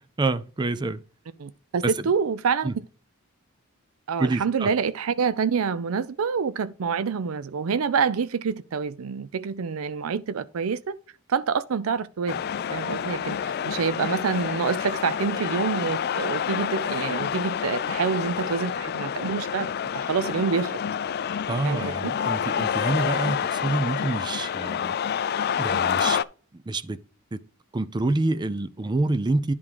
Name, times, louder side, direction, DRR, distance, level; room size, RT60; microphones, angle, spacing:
voice 1, 0.2-1.0 1.8-1.9 2.6-2.8 4.2-4.7 21.5-24.9 25.6-26.2 26.7-27.0 27.3-27.4 27.7-29.5, right 2 dB, 20° right, 0.4 m, -27 dB
voice 2, 1.4-2.7 4.1-10.9 11.3-12.4 12.7-20.8 21.6-22.1, right 6 dB, 85° right, 0.5 m, -27 dB
sound 1, 12.3-26.2, left 8 dB, 50° left, 0.3 m, -28 dB
10.5 x 3.6 x 4.7 m
head